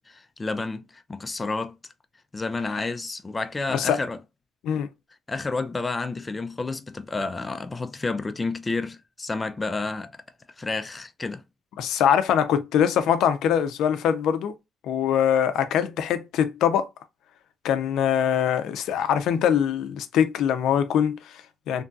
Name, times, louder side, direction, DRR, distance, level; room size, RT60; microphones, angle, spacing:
voice 1, 0.1-1.8 2.3-4.2 5.3-10.1 10.6-11.4, left 3 dB, 20° left, 0.4 m, -30 dB
voice 2, 3.7-4.0 4.6-4.9 11.8-14.5 14.8-16.9 17.6-21.8, left 9 dB, 85° left, 0.4 m, -23 dB
2.9 x 2.3 x 2.5 m
cardioid pair, 110°, 0 cm